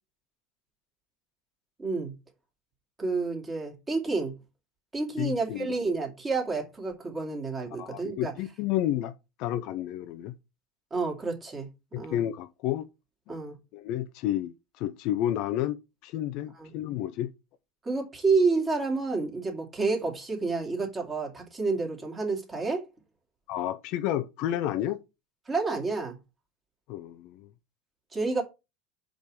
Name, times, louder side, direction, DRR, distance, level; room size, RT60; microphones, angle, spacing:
voice 1, 1.8-2.1 3.0-4.3 4.9-8.3 10.9-11.7 12.0-12.2 13.3-13.5 16.5-16.7 17.8-22.8 25.5-26.2 28.1-28.4, right 4 dB, 20° right, 2.6 m, -29 dB
voice 2, 5.2-5.7 7.8-9.1 9.4-10.3 11.9-12.9 13.7-15.8 16.0-17.3 23.5-25.0 26.9-27.5, left 12 dB, 50° left, 0.5 m, -30 dB
5.3 x 5.0 x 6.2 m
figure-of-eight pair, 75°, 0 cm